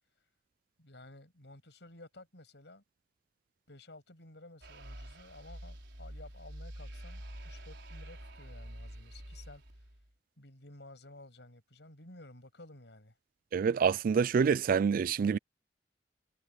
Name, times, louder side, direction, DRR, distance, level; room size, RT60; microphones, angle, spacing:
voice 1, 0.8-2.8 3.7-9.9 10.4-13.2, left 2 dB, 75° left, 7.8 m, -54 dB
sound 1, 4.6-10.1, right 1 dB, 75° right, 5.1 m, -47 dB
voice 2, 13.5-15.4, right 6 dB, 50° right, 0.3 m, -27 dB
head